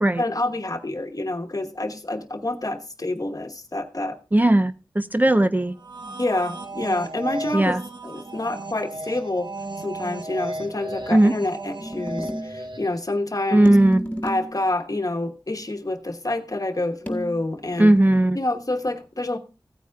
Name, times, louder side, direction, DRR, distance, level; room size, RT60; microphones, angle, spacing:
voice 1, 0.2-4.2 6.1-9.5 9.8-13.8 14.2-17.9 18.3-19.4, left 2 dB, 45° left, 1.1 m, -27 dB
voice 2, 4.3-5.7 7.5-7.8 11.1-11.3 13.5-14.0 17.8-18.4, right 1 dB, 20° right, 0.4 m, -17 dB
sound 1, 5.7-13.1, right 2 dB, 65° right, 0.8 m, -35 dB
sound 2, 11.8-12.6 13.6-14.6 17.1-18.2, equal, 15° left, 1.8 m, -32 dB
16.0 x 9.1 x 2.3 m
wide cardioid pair, 45°, 8 cm